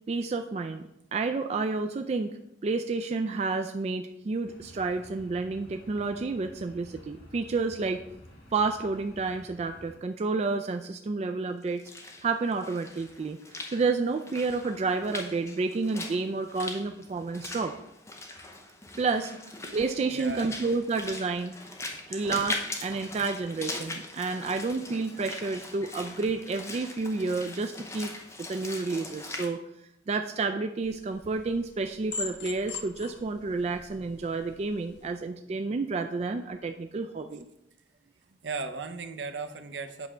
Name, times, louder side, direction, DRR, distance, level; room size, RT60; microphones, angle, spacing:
voice 1, 0.1-0.8 1.1-2.4 2.6-8.0 8.5-11.8 12.2-13.4 13.7-17.7 19.0-19.3 19.7-21.5 22.1-28.1 28.5-29.6 30.1-37.5, right 3 dB, 35° right, 6 dB, 0.3 m, -30 dB
sound 1, 4.4-10.0, equal, 90° left, 2.0 m, -52 dB
Walk footsteps / Splash splatter, 11.6-29.5, left 2 dB, 15° left, 0.8 m, -41 dB
voice 2, 19.3-19.8 20.1-20.5 25.1-25.2 38.3-40.1, right 4 dB, 70° right, 8 dB, 0.7 m, -37 dB
sound 2, 30.8-35.1, left 4 dB, 70° left, 0.9 m, -42 dB
8.1 x 3.3 x 6.1 m, 0.83 s
head